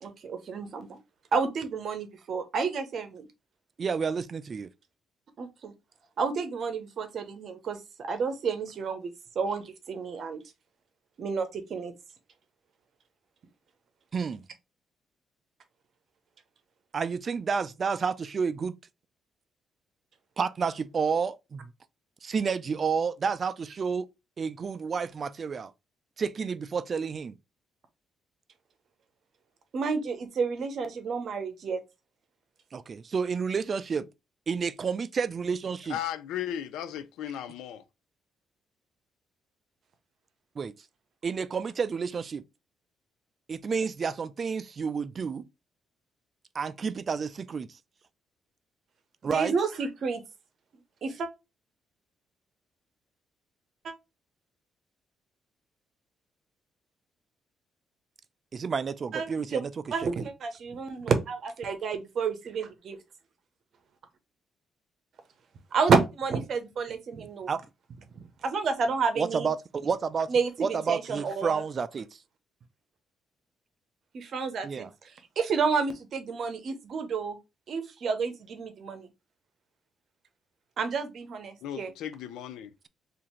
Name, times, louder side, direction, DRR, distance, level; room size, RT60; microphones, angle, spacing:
voice 1, 0.0-1.0 1.3-3.3 5.4-5.7 6.2-10.4 11.2-11.9 29.7-31.8 49.2-50.2 51.0-51.3 53.8-53.9 59.1-59.6 59.9-63.0 65.7-67.5 68.4-69.5 70.3-71.6 74.1-74.9 75.4-77.4 77.7-79.1 80.8-81.9, right 5 dB, 60° right, 0.8 m, -30 dB
voice 2, 3.8-4.7 14.1-14.4 16.9-18.7 20.4-21.7 22.2-24.1 24.4-25.7 26.2-27.3 32.7-34.1 34.5-36.0 40.6-40.7 41.2-42.4 43.5-45.4 46.5-47.7 49.2-49.5 58.5-60.3 67.5-67.6 69.2-70.3 70.6-72.2 74.6-74.9, right 5 dB, 45° right, 0.3 m, -30 dB
voice 3, 35.9-37.8 81.6-82.7, left 10 dB, 90° left, 0.4 m, -36 dB
2.8 x 2.5 x 4.3 m
cardioid pair, 90°, 0 cm